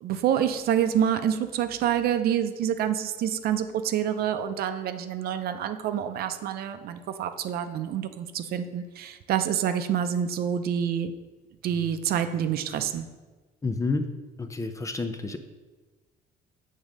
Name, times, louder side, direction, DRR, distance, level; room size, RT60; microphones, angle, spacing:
voice 1, 0.0-11.1 11.6-13.1, right 9 dB, 65° right, 9 dB, 0.6 m, -27 dB
voice 2, 13.6-14.1 14.4-15.4, left 3 dB, 20° left, 7 dB, 0.6 m, -29 dB
7.1 x 3.7 x 6.4 m, 1.3 s
cardioid pair, 110°, 17 cm